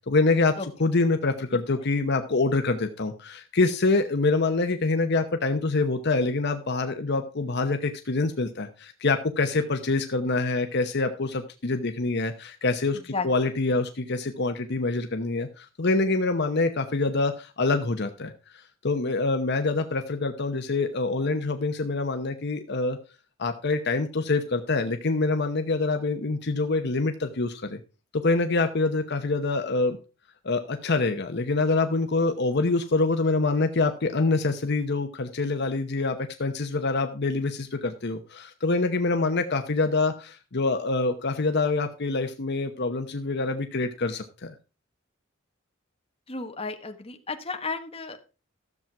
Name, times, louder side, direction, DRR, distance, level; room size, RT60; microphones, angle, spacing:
voice 1, 0.1-23.0 23.4-27.8 28.1-30.0 30.4-44.5, left 3 dB, 55° left, 7 dB, 0.9 m, -25 dB
voice 2, 46.3-48.3, left 4 dB, 30° left, 5 dB, 1.4 m, -33 dB
13.5 x 7.5 x 4.7 m, 0.32 s
head